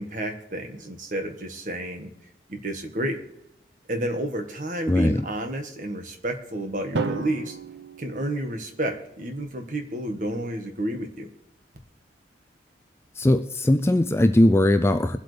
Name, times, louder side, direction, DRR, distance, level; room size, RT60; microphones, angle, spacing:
voice 1, 0.0-2.1 2.5-3.2 3.9-7.6 8.0-11.3, right 1 dB, 45° right, 5 dB, 1.5 m, -30 dB
voice 2, 4.9-5.2 13.2-15.2, left 1 dB, 15° left, 6 dB, 0.4 m, -19 dB
Drum, 6.9-9.0, right 3 dB, 75° right, 0.9 m, -33 dB
23.0 x 8.1 x 3.3 m, 0.78 s
head